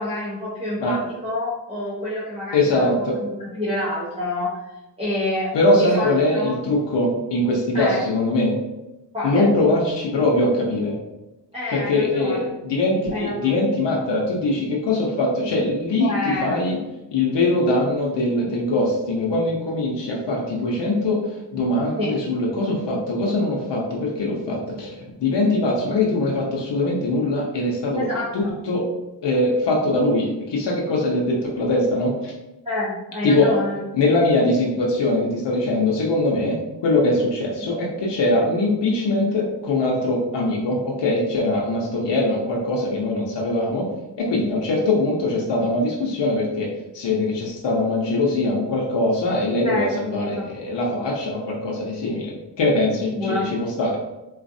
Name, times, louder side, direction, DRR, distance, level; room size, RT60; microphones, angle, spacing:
voice 1, 0.0-2.9 3.2-4.6 5.0-6.5 7.7-8.0 9.1-9.5 11.5-12.5 13.1-13.5 16.0-16.6 22.0-22.1 27.9-28.5 32.6-33.8 49.6-50.5 53.1-53.5, left 1 dB, 15° right, -9 dB, 0.9 m, -27 dB
voice 2, 2.5-3.2 5.5-8.6 9.2-11.0 11.7-16.8 17.1-21.2 21.5-28.0 28.3-28.8 29.2-32.3 33.2-33.5 33.9-36.6 36.8-43.9 44.2-46.7 46.9-54.1, left 2 dB, 75° left, -2 dB, 0.8 m, -22 dB
4.0 x 2.4 x 2.6 m, 1.0 s
wide cardioid pair, 105°, 42 cm